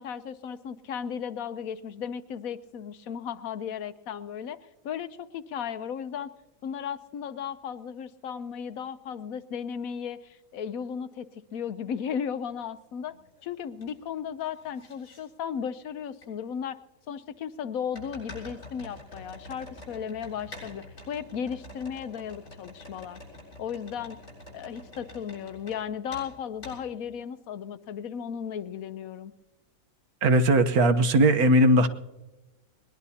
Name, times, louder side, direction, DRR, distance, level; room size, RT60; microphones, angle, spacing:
voice 1, 0.0-4.6 4.8-6.3 6.6-13.1 13.4-16.8 17.1-23.2 23.6-24.2 24.5-29.3, left 7 dB, 70° left, 13 dB, 1.1 m, -35 dB
sound 1, 12.4-12.5 13.1-13.9 14.2-15.2 16.2-16.3 17.9-25.8 26.1-26.3 26.6-26.8, left 1 dB, 50° left, 7.5 m, -46 dB
voice 2, 30.2-31.9, right 1 dB, 70° right, 9 dB, 1.5 m, -19 dB
21.0 x 20.0 x 2.8 m, 1.0 s
omnidirectional pair, 1.6 m